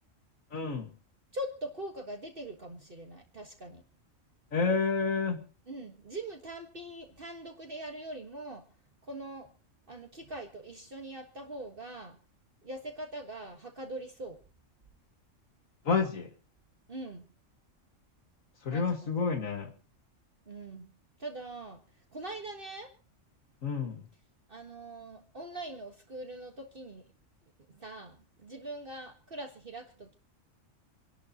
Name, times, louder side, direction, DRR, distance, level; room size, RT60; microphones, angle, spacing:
voice 1, 0.5-0.9 4.5-5.4 15.8-16.3 18.6-19.7 23.6-24.0, left 5 dB, 85° left, 2.3 m, -29 dB
voice 2, 1.3-3.8 5.7-8.6 9.0-9.5 9.9-12.2 12.6-14.4 16.9-17.2 18.7-19.1 20.5-20.9 21.2-21.8 22.1-22.9 24.5-27.0 27.7-30.2, right 1 dB, 45° right, 1.8 m, -42 dB
27.5 x 11.5 x 3.0 m
omnidirectional pair, 1.3 m